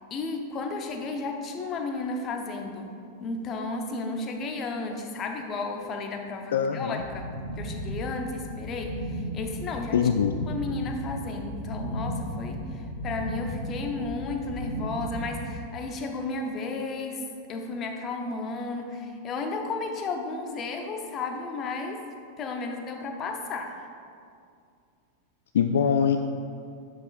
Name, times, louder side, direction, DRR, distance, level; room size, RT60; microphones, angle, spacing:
voice 1, 0.1-2.9 3.2-7.3 7.6-10.0 10.5-17.2 17.5-22.0 22.4-23.7, left 3 dB, 30° left, 4 dB, 0.9 m, -33 dB
voice 2, 6.5-7.0 9.9-10.5 25.5-26.2, left 7 dB, 60° left, 7 dB, 0.3 m, -23 dB
sound 1, 7.0-15.5, equal, 90° right, 1.2 m, -35 dB
10.5 x 7.4 x 2.5 m, 2.4 s
figure-of-eight pair, 90°, 0 cm